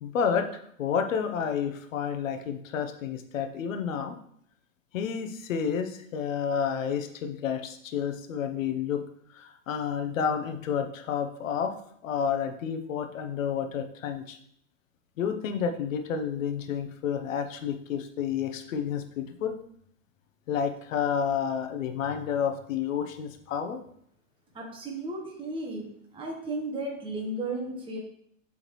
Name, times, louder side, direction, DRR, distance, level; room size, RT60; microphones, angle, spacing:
voice 1, 0.0-4.2 4.9-9.0 9.3-11.7 12.0-14.4 15.2-19.5 20.5-23.8, left 7 dB, 75° left, 6 dB, 0.9 m, -30 dB
voice 2, 24.5-28.0, right 2 dB, 15° right, -1 dB, 1.1 m, -34 dB
8.1 x 3.8 x 3.1 m, 0.68 s
hypercardioid pair, 110°, 40 cm